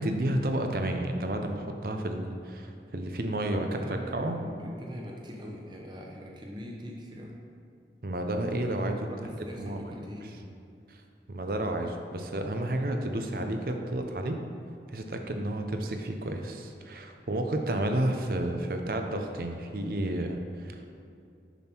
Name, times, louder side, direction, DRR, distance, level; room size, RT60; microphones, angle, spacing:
voice 1, 0.0-4.4 8.0-9.9 10.9-11.0 11.3-14.4 14.9-20.9, right 1 dB, 55° right, 5 dB, 0.6 m, -31 dB
voice 2, 3.7-7.4 9.0-10.5, equal, 25° right, -2 dB, 1.0 m, -42 dB
7.0 x 6.1 x 4.4 m, 2.5 s
head